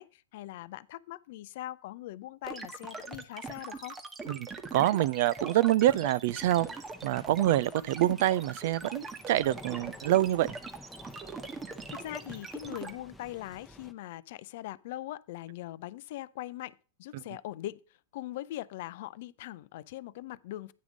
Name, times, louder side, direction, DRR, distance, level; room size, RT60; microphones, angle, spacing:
voice 1, 0.0-4.0 11.9-17.8 18.1-20.7, left 15 dB, 60° left, 0.4 m, -41 dB
sound 1, 2.4-12.9, right 4 dB, 20° right, 1.1 m, -42 dB
voice 2, 4.3-6.7 7.0-10.5 17.1-17.2, right 14 dB, 60° right, 0.3 m, -26 dB
sound 2, 6.3-13.9, left 1 dB, 5° left, 0.8 m, -52 dB
9.4 x 3.6 x 6.2 m
hypercardioid pair, 105°, 0 cm